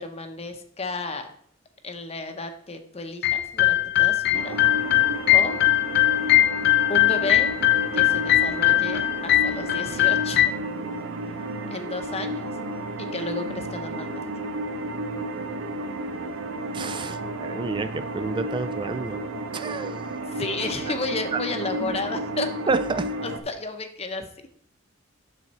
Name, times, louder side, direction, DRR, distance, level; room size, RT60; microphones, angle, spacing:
voice 1, 0.0-1.3 1.8-4.6 5.3-5.6 6.9-7.5 7.9-10.6 11.7-12.5 13.1-14.3 20.3-22.5 23.2-24.3, left 3 dB, 30° left, 7 dB, 0.8 m, -32 dB
sound 1, 3.2-10.5, left 15 dB, 55° left, 0.4 m, -20 dB
sound 2, 4.3-23.4, right 1 dB, 80° right, 0.7 m, -32 dB
voice 2, 16.7-19.2 19.5-20.0 20.3-20.4 21.3-21.4 21.8-22.0 22.7-23.1, right 3 dB, 25° right, 11 dB, 0.4 m, -29 dB
7.6 x 6.4 x 4.1 m, 0.67 s
head